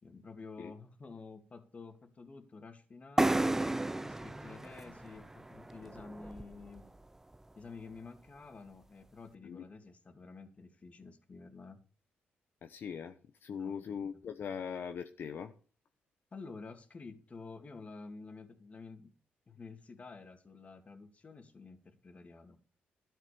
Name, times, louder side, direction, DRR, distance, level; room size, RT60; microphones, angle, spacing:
voice 1, 0.0-3.5 4.0-6.9 7.6-11.8 13.5-14.0 16.3-19.1 19.5-22.6, left 4 dB, 35° left, 2.5 m, -50 dB
sound 1, 3.2-6.8, right 2 dB, 10° right, 0.6 m, -33 dB
voice 2, 12.6-15.5, left 7 dB, 65° left, 1.0 m, -41 dB
13.0 x 7.3 x 7.0 m
cardioid pair, 85°, 4 cm